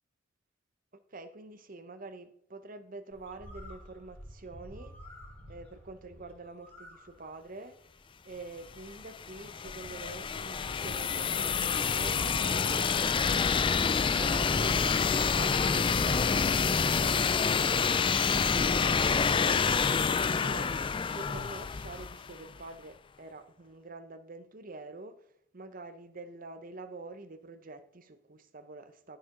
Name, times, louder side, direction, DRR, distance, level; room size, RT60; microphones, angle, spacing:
voice 1, 1.1-5.0 5.5-7.8 8.2-19.7 20.1-20.8 21.1-25.2 25.5-29.2, right 3 dB, 45° right, 0.9 m, -46 dB
Bird, 3.1-12.7, equal, 10° left, 4.7 m, -53 dB
sound 1, 8.7-22.5, left 5 dB, 25° left, 0.4 m, -27 dB
15.0 x 6.6 x 3.9 m
head